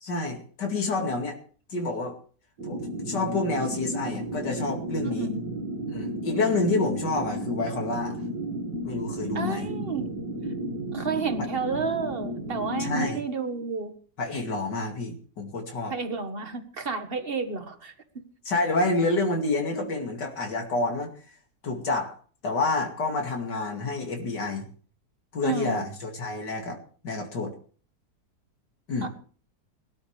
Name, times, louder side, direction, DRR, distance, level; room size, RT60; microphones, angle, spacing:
voice 1, 0.0-1.4 1.7-2.1 2.6-2.8 3.1-5.3 5.9-8.2 8.8-9.7 12.8-13.2 14.2-15.9 18.4-21.1 21.6-22.2 22.4-24.7 25.3-26.8 27.0-27.5 28.9-29.1, left 3 dB, 85° left, 1 dB, 3.0 m, -28 dB
sound 1, 2.6-13.1, right 1 dB, 85° right, 2.7 m, -33 dB
voice 2, 5.0-5.4 9.3-10.2 10.9-13.9 15.9-17.9 25.4-25.9 29.0-29.1, right 5 dB, 35° right, 8 dB, 1.6 m, -31 dB
22.0 x 12.5 x 3.4 m, 0.43 s
omnidirectional pair, 1.8 m